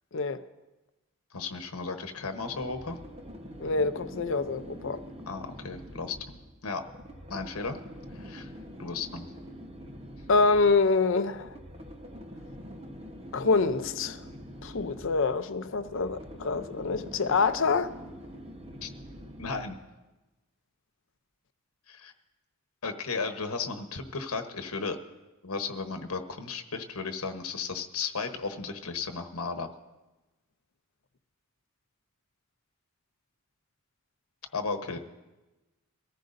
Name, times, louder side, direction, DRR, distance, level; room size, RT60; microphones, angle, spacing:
voice 1, 0.1-0.4 3.6-5.0 10.3-11.6 13.3-14.3 14.6-17.9, left 4 dB, 60° left, 0.6 m, -26 dB
voice 2, 1.3-3.0 5.3-6.3 6.6-6.8 7.3-7.8 8.1-8.5 8.8-9.3 18.8-18.9 19.4-19.8 21.9-22.1 22.8-25.0 25.4-29.7 34.5-35.0, left 4 dB, 85° left, 1.1 m, -34 dB
sound 1, 2.3-19.9, equal, 30° right, 1.0 m, -45 dB
23.5 x 14.5 x 2.6 m
head